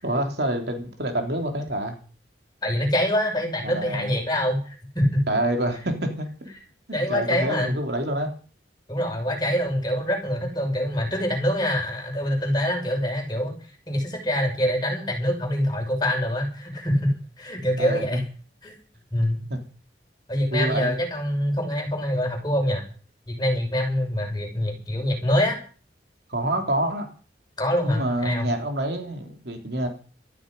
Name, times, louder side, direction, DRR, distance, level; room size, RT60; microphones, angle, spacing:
voice 1, 0.0-2.0 3.6-4.1 5.3-6.5 6.9-8.3 17.8-18.0 19.5-19.6 20.5-21.0 26.3-27.1 27.8-29.9, right 1 dB, 60° right, 4 dB, 3.2 m, -27 dB
voice 2, 2.6-5.3 6.9-7.7 8.9-13.6 13.9-18.2 18.6-18.8 19.1-19.5 20.3-22.8 23.3-25.6 27.6-28.5, equal, 25° left, 1 dB, 6.2 m, -25 dB
15.5 x 14.0 x 5.4 m, 0.40 s
head